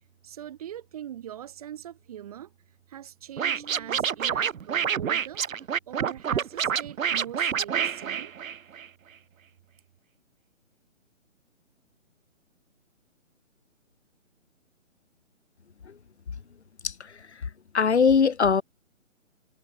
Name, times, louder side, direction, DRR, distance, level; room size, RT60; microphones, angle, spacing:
voice 1, 0.2-2.5 2.9-5.4 5.9-8.3, right 11 dB, 30° right, 1.4 m, -42 dB
Scratching (performance technique), 3.4-8.9, right 8 dB, 85° right, 0.5 m, -27 dB
Marimba xylophone, 3.5-5.6, right 5 dB, 60° right, 6.6 m, -53 dB
voice 2, 16.8-18.6, left 6 dB, 55° left, 1.7 m, -23 dB
figure-of-eight pair, 140°, 39 cm